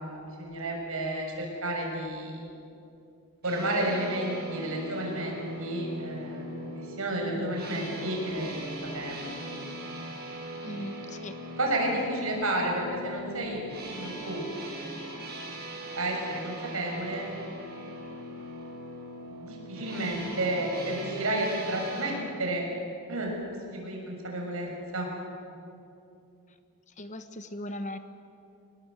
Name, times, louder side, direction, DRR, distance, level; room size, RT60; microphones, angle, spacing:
voice 1, 0.0-2.4 3.4-6.5 6.8-9.4 11.6-14.4 15.9-17.3 19.3-22.6 23.1-23.3 23.7-25.1, right 1 dB, 65° right, 0 dB, 6.5 m, -31 dB
sound 1, 3.4-22.1, right 1 dB, 45° right, 7.7 m, -40 dB
voice 2, 10.6-11.4 27.0-28.0, left 1 dB, 35° left, 10 dB, 1.1 m, -38 dB
25.5 x 20.0 x 8.1 m, 2.6 s
head